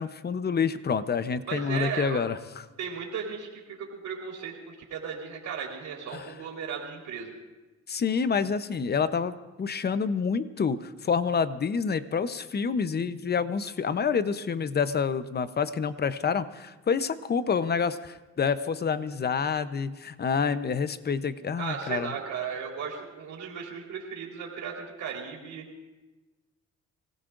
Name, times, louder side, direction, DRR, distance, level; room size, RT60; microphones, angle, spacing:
voice 1, 0.0-2.4 6.1-6.3 7.9-9.3 9.6-22.1, left 6 dB, 35° left, 12 dB, 0.8 m, -28 dB
voice 2, 1.5-2.2 2.8-7.3 21.6-25.6, right 7 dB, 70° right, -1 dB, 4.1 m, -36 dB
25.5 x 16.5 x 2.6 m, 1.2 s
cardioid pair, 90°, 30 cm